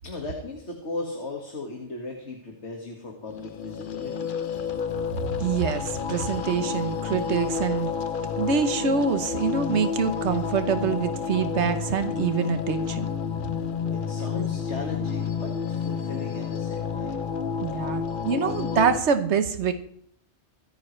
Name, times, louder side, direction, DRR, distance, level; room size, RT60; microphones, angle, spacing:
voice 1, 0.0-4.6 13.9-17.3, left 2 dB, 80° left, 1 dB, 2.1 m, -37 dB
sound 1, 3.3-19.0, left 6 dB, 50° left, 0.8 m, -30 dB
voice 2, 5.4-7.9 8.4-13.1 17.6-19.7, right 6 dB, 80° right, 9 dB, 1.3 m, -25 dB
25.5 x 9.4 x 3.2 m, 0.65 s
omnidirectional pair, 1.2 m